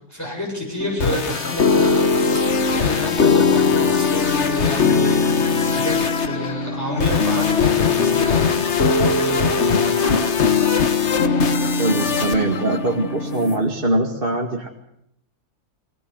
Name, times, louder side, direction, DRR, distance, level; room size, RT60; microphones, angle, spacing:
voice 1, 0.1-6.0 6.2-10.1, equal, 10° left, -3 dB, 7.5 m, -29 dB
sound 1, 0.8-13.6, left 5 dB, 50° left, 1.5 m, -19 dB
sound 2, 7.6-8.6 10.0-11.7 12.1-12.6 13.1-13.6, left 1 dB, 30° left, 3.7 m, -34 dB
voice 2, 11.8-14.7, right 1 dB, 35° right, 1 dB, 2.2 m, -22 dB
21.5 x 20.0 x 8.1 m, 0.76 s
omnidirectional pair, 1.6 m